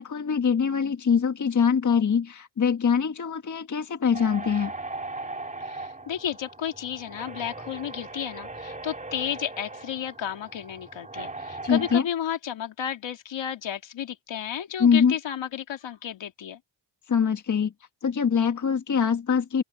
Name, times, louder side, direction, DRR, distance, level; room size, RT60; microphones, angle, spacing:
voice 1, 0.0-4.7 11.6-12.0 14.8-15.1 17.1-17.7 18.0-19.6, left 6 dB, 40° left, 1.6 m, -23 dB
sound 1, 4.1-12.0, right 2 dB, 15° right, 3.1 m, -39 dB
voice 2, 5.6-16.6, left 9 dB, 65° left, 2.5 m, -32 dB
open air
cardioid pair, 110°, 47 cm